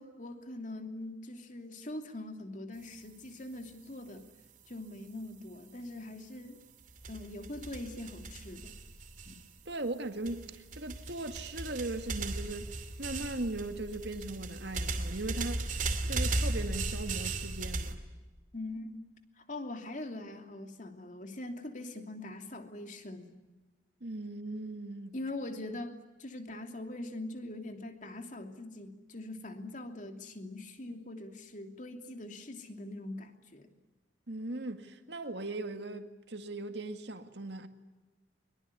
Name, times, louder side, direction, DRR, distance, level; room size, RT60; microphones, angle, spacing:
voice 1, 0.0-4.3 4.7-6.6 7.1-8.8 9.2-9.4 18.5-19.0 19.4-23.4 25.1-33.7, left 2 dB, 40° left, 2.9 m, -42 dB
sound 1, 6.9-9.7 10.2-17.9, right 2 dB, 45° right, 2.9 m, -36 dB
voice 2, 9.7-12.7 13.0-18.0 24.0-25.1 34.3-37.7, right 2 dB, 65° right, 2.1 m, -39 dB
23.5 x 23.5 x 9.8 m
head